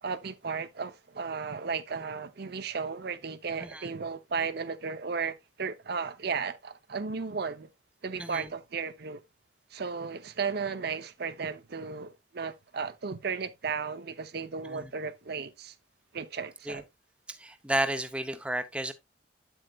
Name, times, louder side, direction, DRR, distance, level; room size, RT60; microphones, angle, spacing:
voice 1, 0.0-7.7 8.0-9.2 9.7-15.7 16.1-16.8, right 5 dB, 55° right, 0.7 m, -35 dB
voice 2, 17.3-18.9, right 1 dB, 5° right, 0.7 m, -32 dB
9.0 x 7.9 x 2.3 m
head